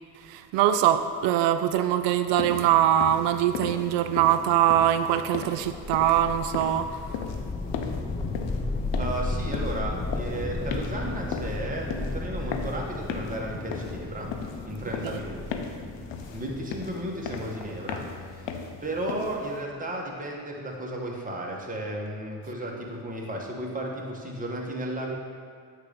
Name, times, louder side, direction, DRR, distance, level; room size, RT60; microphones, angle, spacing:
voice 1, 0.1-7.1 15.0-15.2, right 11 dB, 65° right, 10 dB, 0.5 m, -23 dB
sound 1, 2.4-19.6, left 6 dB, 65° left, 0.7 m, -38 dB
sound 2, 5.5-18.6, left 2 dB, 15° left, 0.6 m, -34 dB
voice 2, 8.9-14.4 14.6-15.7 16.3-18.5 18.8-25.1, right 1 dB, 15° right, -1 dB, 1.4 m, -34 dB
8.2 x 2.9 x 5.0 m, 2.2 s
hypercardioid pair, 55°, 48 cm